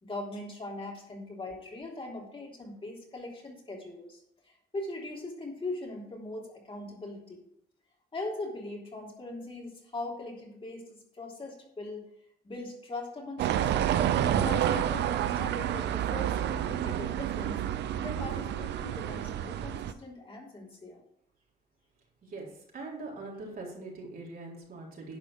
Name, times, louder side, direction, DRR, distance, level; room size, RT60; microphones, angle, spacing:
voice 1, 0.0-7.4 8.1-12.1 12.4-13.9 14.4-17.7 18.0-21.0, left 2 dB, 30° left, -1 dB, 3.5 m, -40 dB
sound 1, 13.4-19.9, right 10 dB, 80° right, 0.7 m, -29 dB
voice 2, 22.7-25.2, right 3 dB, 55° right, -2 dB, 4.0 m, -42 dB
11.0 x 5.0 x 6.5 m, 0.73 s
cardioid pair, 80°, 18 cm